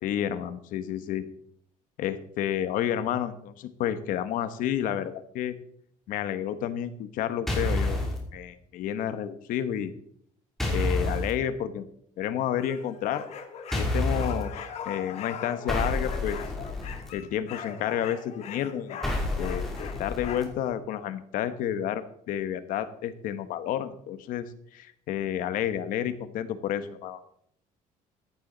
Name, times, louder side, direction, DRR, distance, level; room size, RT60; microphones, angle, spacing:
voice 1, 0.0-1.3 2.0-5.6 6.1-8.0 8.3-9.9 10.7-11.9 12.2-13.3 13.8-16.4 17.1-19.0 19.4-27.2, left 10 dB, 70° left, 11 dB, 1.2 m, -30 dB
sound 1, 7.5-8.2 10.6-11.3 13.7-14.4 15.7-17.1 19.0-20.4, left 2 dB, ahead, 2.8 m, -29 dB
sound 2, 12.6-20.7, left 7 dB, 50° left, 1.6 m, -41 dB
14.5 x 10.0 x 4.0 m, 0.68 s
cardioid pair, 170°, 14 cm